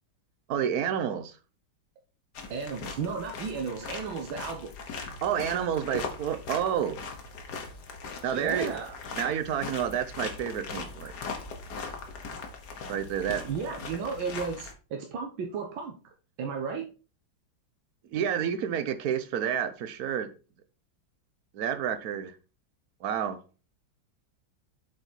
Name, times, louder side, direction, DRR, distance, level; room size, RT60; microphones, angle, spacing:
voice 1, 0.5-1.4 5.2-7.0 8.2-8.7 9.2-11.1 12.9-13.4 18.1-20.3 21.5-22.4 23.0-23.4, right 8 dB, 60° right, 1.1 m, -29 dB
sound 1, 2.3-14.7, left 4 dB, 60° left, 1.7 m, -40 dB
voice 2, 2.5-4.7 8.2-9.0 13.5-16.0 16.4-16.9, right 5 dB, 85° right, 1.7 m, -34 dB
7.8 x 4.2 x 4.5 m
omnidirectional pair, 2.1 m